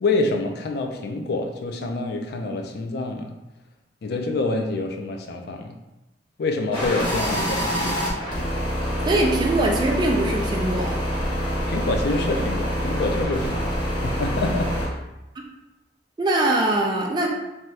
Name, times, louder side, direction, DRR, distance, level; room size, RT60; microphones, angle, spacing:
voice 1, 0.0-3.3 4.0-5.7 6.4-8.0 11.7-13.7 14.0-14.9, left 2 dB, 60° left, 4 dB, 0.4 m, -26 dB
sound 1, 6.7-14.9, equal, 30° left, 1.0 m, -26 dB
voice 2, 9.0-11.0 16.2-17.3, right 2 dB, 25° right, 0 dB, 0.3 m, -22 dB
2.7 x 2.3 x 3.1 m, 1.0 s
head